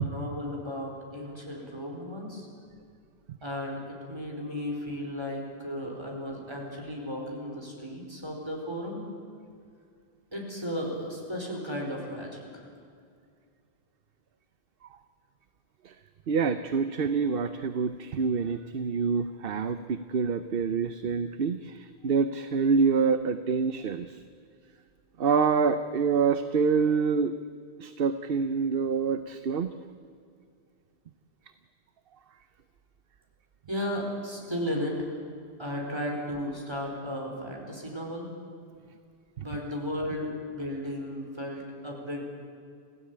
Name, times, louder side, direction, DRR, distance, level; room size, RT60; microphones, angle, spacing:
voice 1, 0.0-2.5 3.4-3.8 4.1-9.0 10.3-12.6 33.7-35.1 35.6-38.3 39.4-42.3, left 1 dB, 25° right, 0 dB, 4.7 m, -34 dB
voice 2, 16.3-24.2 25.2-27.3 27.8-29.7, right 5 dB, 60° right, 11 dB, 1.0 m, -26 dB
26.0 x 16.5 x 8.8 m, 2.3 s
omnidirectional pair, 1.1 m